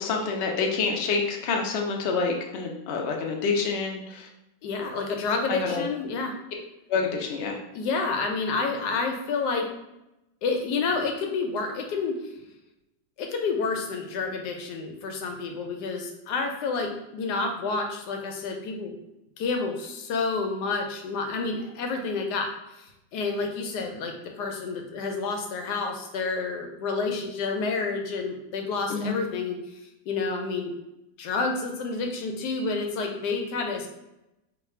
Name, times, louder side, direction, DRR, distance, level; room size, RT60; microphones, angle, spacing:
voice 1, 0.0-4.3 5.5-5.8 6.9-7.6 28.9-29.2, left 4 dB, 65° left, 1 dB, 0.6 m, -27 dB
voice 2, 4.6-6.4 7.7-9.7 10.4-12.1 13.2-18.9 19.4-22.5 22.8-29.6 30.1-30.7 31.2-33.9, left 4 dB, 85° left, 3 dB, 1.2 m, -29 dB
3.2 x 2.2 x 4.2 m, 0.91 s
omnidirectional pair, 1.7 m